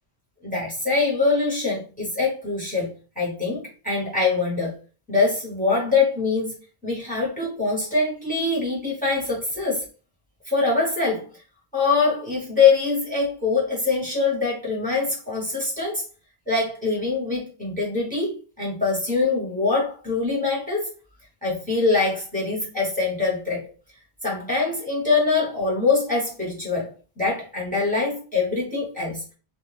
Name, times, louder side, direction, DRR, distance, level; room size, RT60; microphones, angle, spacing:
voice 1, 0.4-4.7 5.1-6.5 6.8-9.9 10.4-11.2 11.7-16.0 16.5-20.9 21.4-23.6 24.2-26.9 27.2-29.2, left 4 dB, 10° left, -3 dB, 1.0 m, -23 dB
2.5 x 2.1 x 3.2 m, 0.36 s
omnidirectional pair, 1.0 m